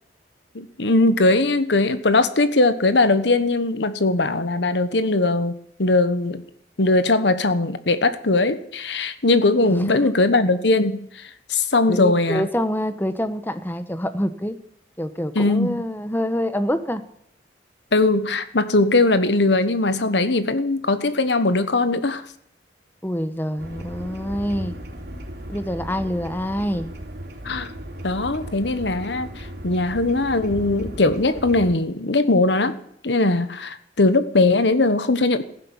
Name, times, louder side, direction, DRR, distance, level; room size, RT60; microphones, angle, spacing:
voice 1, 0.5-5.5 5.8-6.4 6.8-11.2 11.5-12.5 15.3-15.8 17.9-22.2 27.4-27.7 28.0-32.8 33.0-35.4, left 2 dB, 75° left, 12 dB, 1.2 m, -20 dB
voice 2, 9.7-10.1 11.9-14.6 15.0-17.0 23.0-24.8 25.5-26.9, equal, 10° left, 11 dB, 1.1 m, -26 dB
sound 1, 23.6-31.7, equal, 60° right, 3.5 m, -36 dB
15.0 x 11.0 x 7.3 m, 0.70 s
head